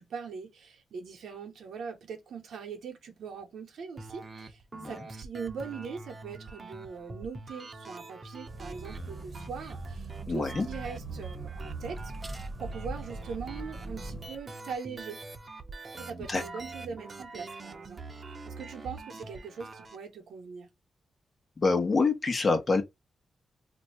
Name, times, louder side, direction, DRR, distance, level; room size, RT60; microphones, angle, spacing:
voice 1, 0.0-15.2 16.0-18.0 18.4-20.7, right 5 dB, 80° right, 0.8 m, -41 dB
sound 1, 4.0-20.0, right 3 dB, 40° right, 0.7 m, -44 dB
sound 2, 8.5-14.3, right 2 dB, 15° right, 1.0 m, -41 dB
voice 2, 10.3-10.7 16.3-16.4 21.6-22.8, left 4 dB, 40° left, 0.9 m, -26 dB
2.6 x 2.2 x 4.0 m
cardioid pair, 70°, 0 cm